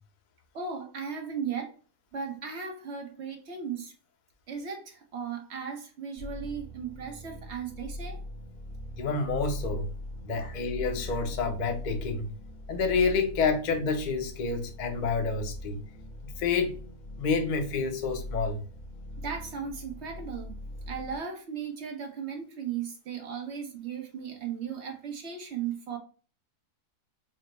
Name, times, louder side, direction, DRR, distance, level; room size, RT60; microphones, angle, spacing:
voice 1, 0.5-1.7 2.1-3.9 4.5-8.2 10.3-10.5 19.2-20.6 20.9-26.0, right 7 dB, 55° right, 0.8 m, -36 dB
sound 1, 6.2-21.2, left 1 dB, 40° left, 1.2 m, -41 dB
voice 2, 9.0-9.9 10.2-12.3 12.7-15.8 16.4-16.8 17.2-18.6, left 4 dB, 70° left, 0.4 m, -28 dB
4.2 x 2.0 x 3.1 m
omnidirectional pair, 1.7 m